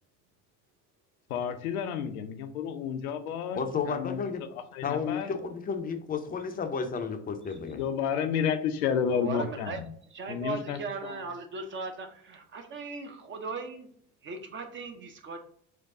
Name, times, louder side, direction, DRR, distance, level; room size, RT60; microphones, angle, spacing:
voice 1, 1.3-3.6 3.9-5.3 7.7-9.9 10.3-11.2, left 7 dB, 70° left, 7 dB, 0.6 m, -31 dB
voice 2, 3.5-4.4 4.8-7.8, left 5 dB, 20° left, 6 dB, 0.5 m, -32 dB
voice 3, 9.1-9.8 10.1-13.9 14.2-15.4, right 4 dB, 25° right, 6 dB, 0.5 m, -38 dB
4.4 x 2.3 x 3.8 m, 0.62 s
figure-of-eight pair, 60°, 45 cm